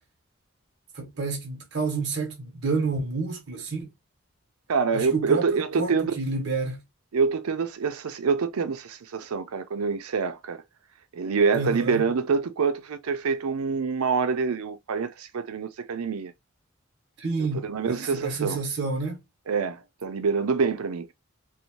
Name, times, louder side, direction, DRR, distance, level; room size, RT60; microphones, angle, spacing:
voice 1, 0.9-3.9 4.9-6.8 11.5-12.1 17.2-19.2, right 3 dB, 55° right, 0.8 m, -29 dB
voice 2, 4.7-6.1 7.1-10.6 11.1-16.3 17.6-18.6 19.5-21.1, right 5 dB, 90° right, 0.5 m, -26 dB
2.6 x 2.0 x 2.9 m
head